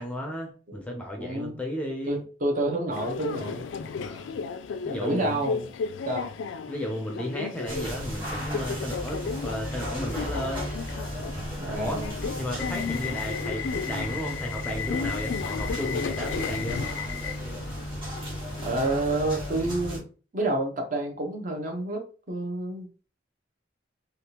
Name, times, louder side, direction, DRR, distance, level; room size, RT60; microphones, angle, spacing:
voice 1, 0.0-2.2 3.9-4.3 4.9-5.4 6.7-10.7 11.8-12.0 12.4-16.8, equal, 5° left, 1 dB, 0.5 m, -34 dB
voice 2, 1.1-1.5 2.1-3.6 5.0-5.7 6.1-6.3 11.6-12.1 18.6-20.0 20.3-22.0 22.3-22.9, right 2 dB, 45° right, 2 dB, 0.8 m, -28 dB
Subway metro underground, 2.9-18.9, left 6 dB, 85° left, 0.3 m, -34 dB
sound 1, 7.7-20.0, equal, 25° right, 1.5 m, -35 dB
3.4 x 2.4 x 2.8 m, 0.38 s
head